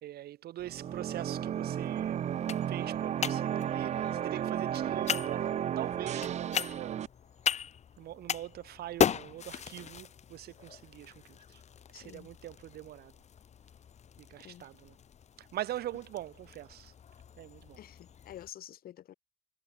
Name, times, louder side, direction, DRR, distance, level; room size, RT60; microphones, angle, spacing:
voice 1, 0.0-2.2 2.7-5.5 5.8-7.1 8.0-11.2 11.5-11.6 11.9-13.1 14.3-15.0 15.4-16.9 17.4-17.8, right 13 dB, 70° right, 2.9 m, -42 dB
sound 1, 0.6-18.5, left 8 dB, 40° left, 1.6 m, -38 dB
sound 2, 0.6-7.1, right 10 dB, 40° right, 0.6 m, -33 dB
voice 2, 11.9-12.3 14.4-14.7 17.8-19.1, left 11 dB, 60° left, 5.7 m, -49 dB
cardioid pair, 110°, 17 cm